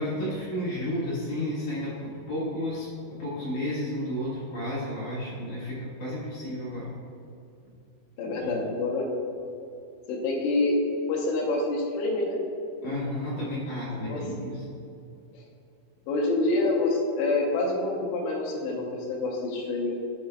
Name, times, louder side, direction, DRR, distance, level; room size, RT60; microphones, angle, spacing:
voice 1, 0.0-2.9 3.2-6.9 8.4-8.5 12.8-14.8, left 1 dB, 60° left, -9 dB, 2.2 m, -32 dB
voice 2, 8.2-9.1 10.1-10.8 11.1-12.4 14.0-14.2 16.1-19.9, left 2 dB, 80° left, -1 dB, 2.7 m, -27 dB
10.5 x 5.9 x 2.2 m, 2.6 s
omnidirectional pair, 5.8 m